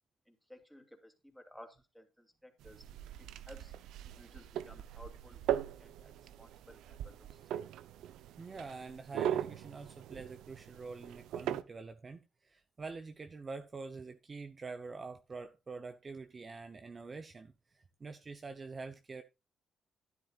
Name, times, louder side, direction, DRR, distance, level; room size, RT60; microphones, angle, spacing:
voice 1, 0.3-2.8 3.2-3.7 4.0-7.7, equal, ahead, 2.7 m, -56 dB
sound 1, 2.6-11.6, right 10 dB, 85° right, 0.6 m, -40 dB
voice 2, 8.4-19.2, right 4 dB, 35° right, 0.8 m, -46 dB
12.0 x 10.0 x 2.4 m
cardioid pair, 90°, 0 cm